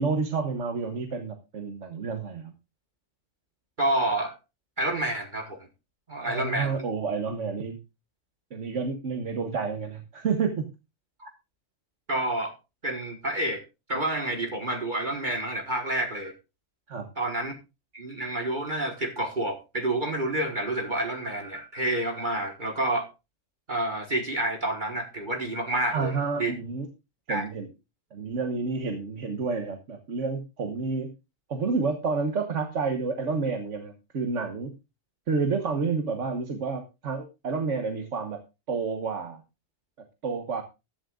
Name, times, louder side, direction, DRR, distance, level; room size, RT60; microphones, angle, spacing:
voice 1, 0.0-2.5 6.2-7.8 8.5-10.7 16.9-17.1 25.9-26.9 27.3-27.7 28.1-31.1 31.5-34.7 35.3-38.4 38.7-39.4 40.2-40.6, right 4 dB, 65° right, 5 dB, 1.5 m, -29 dB
voice 2, 3.8-4.4 4.8-5.7 6.1-6.8 11.2-11.3 12.1-12.5 12.8-13.6 13.9-16.3 17.2-17.5 17.9-23.1 23.7-26.5 27.3-27.5, right 1 dB, 35° right, 3 dB, 1.6 m, -29 dB
15.0 x 11.5 x 2.4 m, 0.28 s
omnidirectional pair, 1.4 m